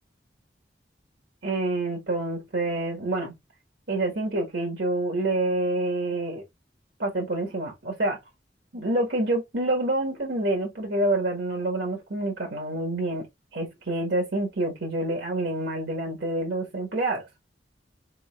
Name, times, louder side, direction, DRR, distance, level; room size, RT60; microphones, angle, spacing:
voice 1, 1.4-3.3 3.9-6.4 7.0-8.2 8.7-13.3 13.5-17.3, right 2 dB, 85° right, 1.5 m, -27 dB
4.1 x 3.7 x 2.3 m
head